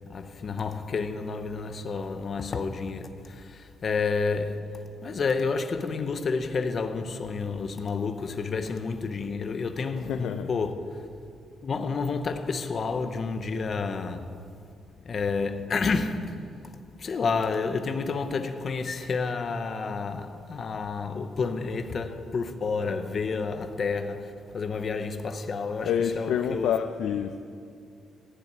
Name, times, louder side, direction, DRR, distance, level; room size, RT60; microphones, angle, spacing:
voice 1, 0.0-11.1 11.6-14.4 15.0-16.5 17.0-26.7 27.2-27.3, left 4 dB, 35° left, 0.7 m, -30 dB
voice 2, 10.1-10.5 25.8-27.4, left 8 dB, 85° left, 0.5 m, -27 dB
14.5 x 5.8 x 9.3 m
cardioid pair, 160°, 0 cm